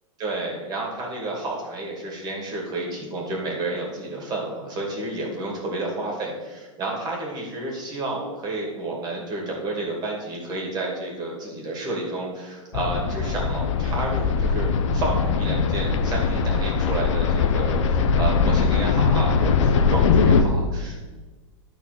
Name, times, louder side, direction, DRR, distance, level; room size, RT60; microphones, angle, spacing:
voice 1, 0.2-21.0, right 2 dB, 25° right, -1 dB, 2.4 m, -30 dB
sound 1, 12.7-20.4, left 5 dB, 60° left, 0.8 m, -21 dB
11.5 x 4.2 x 5.8 m, 1.3 s
hypercardioid pair, 145°, 17 cm